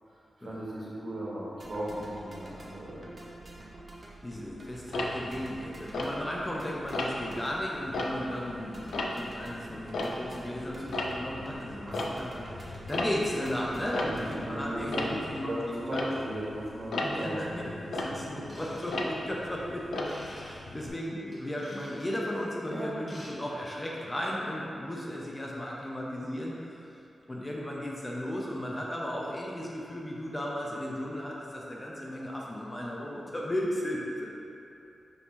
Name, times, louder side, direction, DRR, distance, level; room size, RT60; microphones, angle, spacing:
voice 1, 0.1-3.1 11.9-12.1 13.9-15.2 15.5-17.4 18.7-18.9 22.6-22.9, right 1 dB, 60° right, -8 dB, 1.1 m, -37 dB
sound 1, 1.6-15.3, right 2 dB, 45° right, 0.6 m, -48 dB
voice 2, 4.2-15.5 15.9-16.2 17.0-26.8 27.3-34.3, left 1 dB, 15° left, -3 dB, 0.5 m, -35 dB
Tick-tock, 4.9-6.6 6.9-7.4 7.8-10.5 10.8-20.9, left 2 dB, 90° left, 0.4 m, -36 dB
Ratchet pawl / Tools, 18.5-19.4 20.0-20.5 21.3-22.2 22.9-23.3 23.6-23.8 24.3-24.4, equal, 45° left, 1.4 m, -49 dB
5.2 x 2.7 x 3.0 m, 2.7 s
wide cardioid pair, 125°, 0 cm